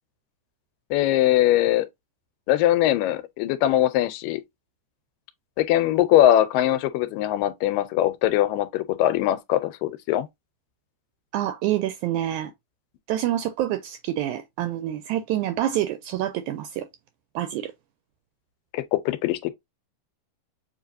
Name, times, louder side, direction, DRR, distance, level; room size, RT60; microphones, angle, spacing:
voice 1, 0.9-1.9 2.5-4.4 5.6-10.3 18.7-19.5, left 13 dB, 85° left, 2.3 m, -21 dB
voice 2, 11.3-12.5 13.1-16.9 17.4-17.7, right 12 dB, 80° right, 1.7 m, -27 dB
7.1 x 2.8 x 2.6 m
omnidirectional pair, 3.9 m